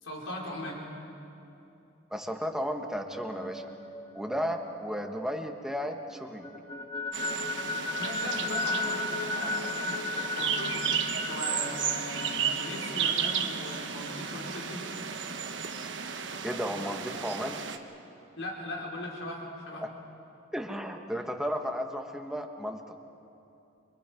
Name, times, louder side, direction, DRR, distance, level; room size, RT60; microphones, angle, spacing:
voice 1, 0.0-0.8 8.0-10.9 11.2-14.8 18.4-19.9, left 1 dB, 80° left, -1 dB, 4.9 m, -39 dB
voice 2, 2.1-3.6 4.1-6.5 16.4-17.6 19.8-19.9 20.5-23.0, equal, 5° right, 3 dB, 1.4 m, -34 dB
sound 1, 3.1-5.8 6.1-15.6, left 3 dB, 25° left, 1.7 m, -37 dB
sound 2, 7.1-17.8, right 7 dB, 65° right, 1.3 m, -33 dB
29.5 x 25.0 x 5.2 m, 2.8 s
head